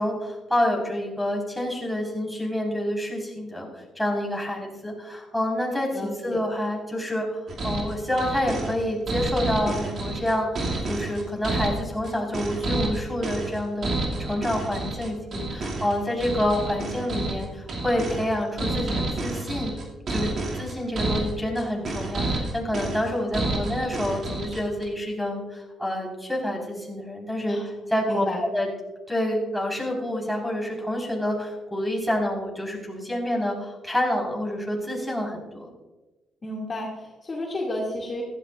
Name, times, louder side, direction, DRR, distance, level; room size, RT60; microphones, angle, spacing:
voice 1, 0.0-3.7 3.9-10.5 10.8-19.8 20.1-27.6 27.9-28.7 29.1-35.7, left 1 dB, ahead, -2 dB, 4.4 m, -28 dB
voice 2, 5.9-6.4 18.6-18.8 27.5-27.7 28.1-28.4 36.4-38.2, left 1 dB, 30° left, -3 dB, 2.3 m, -32 dB
sound 1, 7.5-24.9, right 2 dB, 50° right, 2.4 m, -29 dB
15.5 x 13.0 x 2.5 m, 1.1 s
cardioid pair, 90°, 0 cm